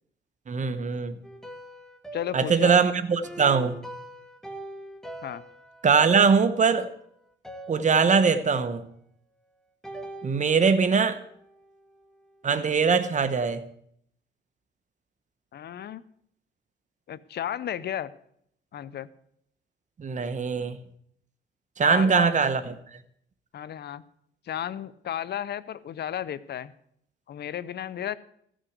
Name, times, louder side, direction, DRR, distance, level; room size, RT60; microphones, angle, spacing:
voice 1, 0.5-1.1 2.3-3.8 5.8-6.9 7.7-8.8 10.2-11.2 12.4-13.6 20.0-20.8 21.8-22.7, right 5 dB, 40° right, 12 dB, 1.1 m, -22 dB
sound 1, 1.2-7.0 7.4-8.6 9.8-12.0, right 1 dB, ahead, 1.8 m, -44 dB
voice 2, 2.1-2.8 5.2-5.4 15.5-16.0 17.1-18.1 18.7-19.1 21.8-22.3 23.5-24.0 24.4-26.7 27.3-28.2, left 10 dB, 55° left, 18 dB, 0.7 m, -33 dB
14.5 x 6.3 x 8.1 m, 0.70 s
cardioid pair, 90°, 20 cm